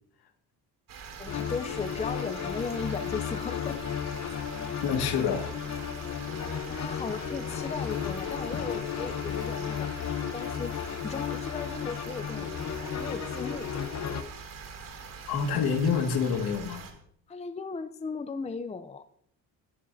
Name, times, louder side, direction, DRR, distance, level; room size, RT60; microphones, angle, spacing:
sound 1, 0.9-16.9, right 5 dB, 55° right, 3.3 m, -44 dB
voice 1, 1.2-3.8 6.7-9.9 10.3-10.7 11.0-12.5 12.9-13.7 17.3-19.0, left 4 dB, 15° left, 0.6 m, -36 dB
sound 2, 1.3-14.2, left 8 dB, 40° left, 1.1 m, -34 dB
voice 2, 4.8-5.5 8.5-8.6 15.3-16.8, left 6 dB, 65° left, 2.1 m, -27 dB
21.5 x 10.0 x 2.8 m
cardioid pair, 105°, 41 cm